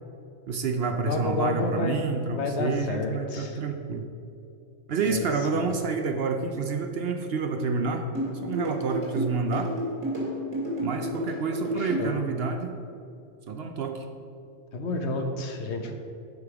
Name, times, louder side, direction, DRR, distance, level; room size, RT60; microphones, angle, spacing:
voice 1, 0.5-4.0 4.9-9.7 10.8-12.7 13.5-14.0 15.9-16.0, right 4 dB, 60° right, 6 dB, 0.8 m, -29 dB
voice 2, 1.0-3.6 5.1-5.8 11.7-12.2 14.7-15.9, left 3 dB, 60° left, 4 dB, 1.1 m, -30 dB
sound 1, 8.1-12.1, right 1 dB, 90° right, 2.6 m, -30 dB
11.5 x 5.1 x 4.8 m, 2.6 s
omnidirectional pair, 1.3 m